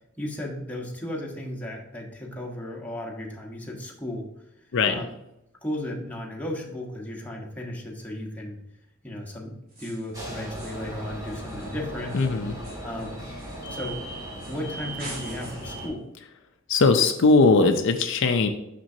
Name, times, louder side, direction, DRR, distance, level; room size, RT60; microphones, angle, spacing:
voice 1, 0.2-4.3 4.9-5.1 5.6-8.6 9.0-12.2 12.8-13.2 13.7-14.0 14.4-16.1, left 1 dB, 10° left, -2 dB, 1.1 m, -35 dB
sound 1, 9.7-10.2 10.5-10.9 11.2-13.9 14.4-14.7 15.0-15.8, right 2 dB, 45° right, 2.2 m, -45 dB
sound 2, 10.1-15.9, right 1 dB, 15° right, 1.9 m, -37 dB
voice 2, 12.1-12.5 16.7-18.5, left 3 dB, 60° left, 7 dB, 0.5 m, -19 dB
6.0 x 6.0 x 2.7 m, 0.87 s
head